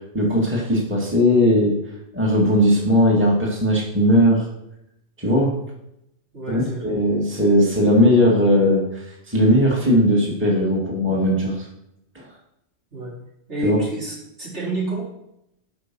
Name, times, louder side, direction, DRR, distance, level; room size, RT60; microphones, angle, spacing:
voice 1, 0.1-1.8 2.1-4.5 5.2-5.6 6.5-11.7 12.2-12.3 13.6-13.8, equal, 10° right, -3 dB, 2.0 m, -18 dB
voice 2, 6.3-7.0 12.9-13.1 13.5-15.0, right 2 dB, 65° right, -6 dB, 4.0 m, -29 dB
13.0 x 5.4 x 6.1 m, 0.82 s
omnidirectional pair, 1.3 m